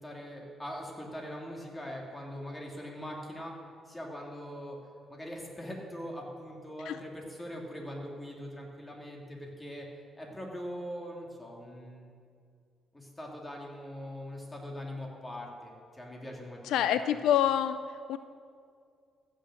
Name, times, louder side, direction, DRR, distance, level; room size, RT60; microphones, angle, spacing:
voice 1, 0.0-3.5 3.9-4.8 5.1-9.9 10.2-12.1 12.9-16.6 17.0-17.2, equal, 15° left, -1 dB, 2.8 m, -42 dB
voice 2, 16.6-18.2, left 10 dB, 85° left, 12 dB, 0.4 m, -27 dB
15.0 x 6.4 x 7.7 m, 2.3 s
cardioid pair, 90°, 0 cm